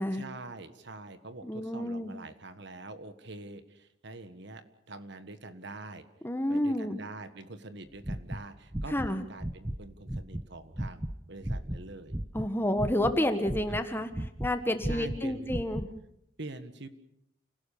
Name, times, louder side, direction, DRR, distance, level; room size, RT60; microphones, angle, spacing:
voice 1, 0.1-6.1 6.5-11.0 11.3-12.2 13.7-13.8 14.9-15.5 16.4-16.9, right 2 dB, 60° right, 10 dB, 1.6 m, -45 dB
voice 2, 1.4-2.1 6.2-7.0 8.9-9.2 12.3-14.1 14.4-15.9, left 1 dB, 10° left, 8 dB, 1.4 m, -29 dB
sound 1, 7.9-9.1 9.4-9.8 10.1-12.5 12.8-14.5 14.8-15.9, right 1 dB, 15° right, 0.8 m, -35 dB
29.0 x 17.5 x 6.8 m, 0.76 s
head